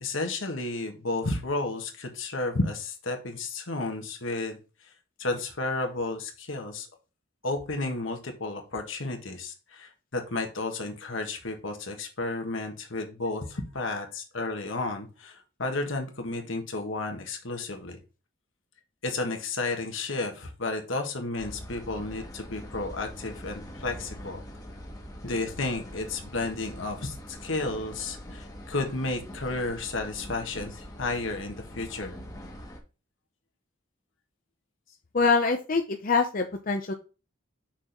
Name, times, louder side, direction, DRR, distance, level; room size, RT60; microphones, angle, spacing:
voice 1, 0.0-4.6 5.2-6.9 7.4-18.0 19.0-24.4 25.2-32.2, left 2 dB, 70° left, 4 dB, 1.5 m, -32 dB
sound 1, 21.4-32.8, equal, 15° left, 1.3 m, -43 dB
voice 2, 35.1-36.9, left 4 dB, 45° left, 4 dB, 0.7 m, -24 dB
6.0 x 4.5 x 5.2 m, 0.32 s
head